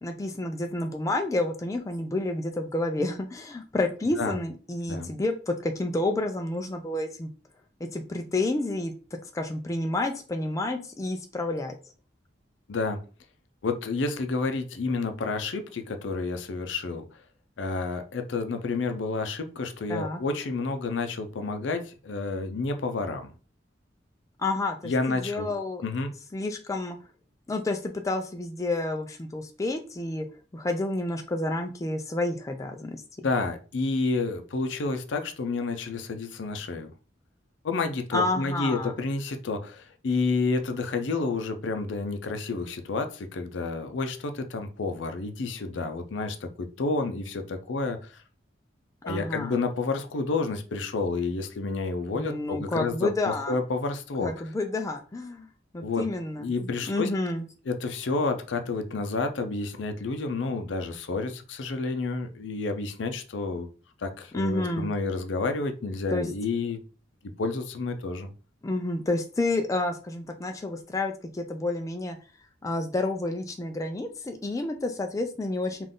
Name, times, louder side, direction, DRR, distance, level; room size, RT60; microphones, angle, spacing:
voice 1, 0.0-7.3 7.9-8.9 9.3-11.7 19.9-20.2 24.4-25.8 26.3-27.0 27.5-30.3 30.5-33.0 38.1-38.9 49.1-49.6 52.2-53.6 54.2-55.5 55.7-56.5 56.9-57.4 64.3-64.9 66.1-66.3 68.6-72.2 72.6-75.9, left 2 dB, 20° left, 4 dB, 0.3 m, -29 dB
voice 2, 12.7-13.0 13.6-17.0 17.6-23.3 24.8-25.5 25.8-26.1 33.2-36.9 37.6-48.2 49.0-54.3 55.8-56.1 56.4-57.1 57.7-63.7 64.0-66.8 67.4-68.3, left 3 dB, 85° left, 7 dB, 0.5 m, -30 dB
3.7 x 2.5 x 3.7 m, 0.36 s
head